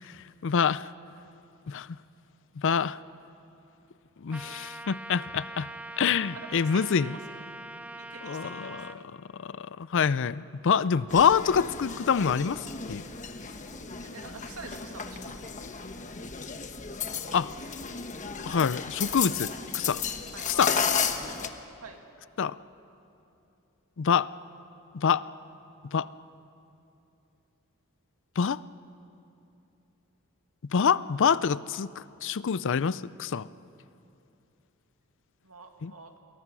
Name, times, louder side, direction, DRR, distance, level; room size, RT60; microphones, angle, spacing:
voice 1, 0.4-0.9 1.7-1.9 2.6-3.0 4.2-5.7 6.0-7.2 8.2-8.9 9.3-12.6 12.9-13.0 17.3-17.5 18.5-20.0 20.6-20.7 22.4-22.6 24.0-24.3 24.9-25.2 25.9-26.1 28.4-28.6 30.7-33.5 35.8-35.9, left 6 dB, 60° left, 18 dB, 0.5 m, -26 dB
Trumpet, 4.3-9.0, right 1 dB, 5° right, 0.6 m, -42 dB
voice 2, 6.3-7.4 8.0-9.0 14.0-15.5 20.3-20.7 21.8-22.0 35.4-36.1, right 4 dB, 75° right, 4 dB, 2.2 m, -46 dB
sound 1, 11.1-21.5, left 6 dB, 35° left, 1.2 m, -34 dB
29.0 x 23.0 x 6.2 m, 2.8 s
head